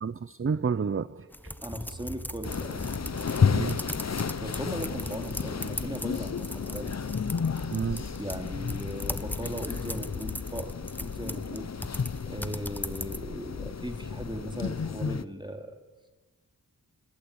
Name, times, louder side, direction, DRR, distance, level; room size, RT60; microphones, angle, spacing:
voice 1, 0.0-1.5 3.5-3.8 7.7-8.1, right 5 dB, 40° right, 16 dB, 0.7 m, -30 dB
sound 1, 1.3-13.2, left 1 dB, 5° left, 1.1 m, -39 dB
voice 2, 1.6-2.8 4.4-6.9 8.2-11.7 12.3-15.8, equal, 15° right, 4 dB, 4.2 m, -38 dB
sound 2, 1.9-10.5, right 2 dB, 60° right, 3.8 m, -50 dB
sound 3, 2.4-15.2, left 6 dB, 50° left, 0.9 m, -32 dB
26.5 x 20.5 x 8.8 m, 1.3 s
wide cardioid pair, 60°, 34 cm